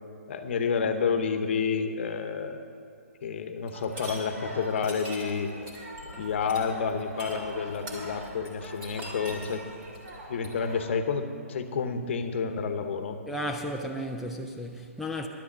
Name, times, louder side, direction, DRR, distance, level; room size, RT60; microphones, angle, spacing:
voice 1, 0.3-2.6 3.2-5.5 6.1-9.7 10.3-13.2, left 5 dB, 50° left, 0.9 m, -29 dB
sound 1, 3.7-4.2 4.7-10.6, right 1 dB, 25° right, 2.3 m, -42 dB
sound 2, 3.7-10.9, equal, 80° right, 3.5 m, -44 dB
voice 2, 13.3-15.3, equal, ahead, 0.3 m, -34 dB
11.0 x 7.9 x 7.3 m
hypercardioid pair, 150°, 8 cm